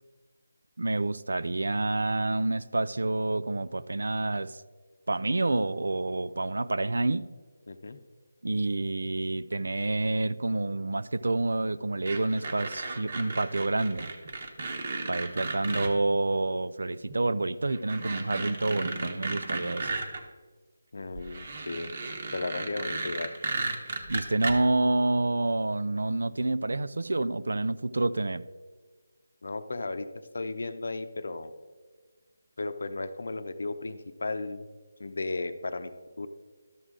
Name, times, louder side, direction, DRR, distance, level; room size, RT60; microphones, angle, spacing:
voice 1, 0.8-4.6 5.1-7.3 8.4-14.1 15.1-19.9 24.1-28.5, right 2 dB, 80° right, 0.4 m, -28 dB
voice 2, 7.7-8.0 20.9-21.9 22.3-23.3 29.4-31.5 32.6-34.7 35.0-35.9 36.2-36.3, left 3 dB, 70° left, 0.7 m, -35 dB
sound 1, 12.1-15.9 17.1-17.2 17.7-20.2 21.1-24.5, right 3 dB, 50° right, 1.2 m, -34 dB
12.5 x 6.4 x 3.7 m
figure-of-eight pair, 160°, 0 cm